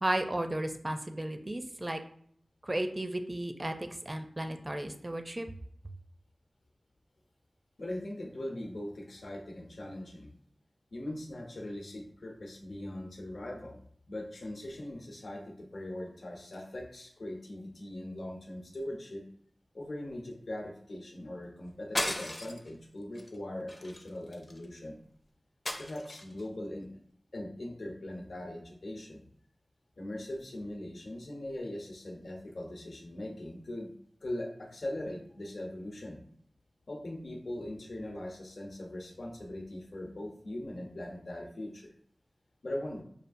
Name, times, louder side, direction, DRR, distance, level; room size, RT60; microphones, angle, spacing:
voice 1, 0.0-2.0 2.6-5.5, right 1 dB, 25° right, 6 dB, 0.4 m, -34 dB
voice 2, 7.8-10.3 10.9-13.8 14.1-19.2 19.7-25.0 25.8-26.9 27.3-29.2 30.0-33.9 34.2-36.2 36.9-41.9 42.6-43.0, left 1 dB, 75° left, 1 dB, 0.8 m, -40 dB
sound 1, 21.9-22.7 23.1-23.3 23.7-24.6 25.6-26.4, left 1 dB, 35° left, 0.5 m, -36 dB
6.4 x 2.4 x 2.6 m, 0.63 s
wide cardioid pair, 85°, 0 cm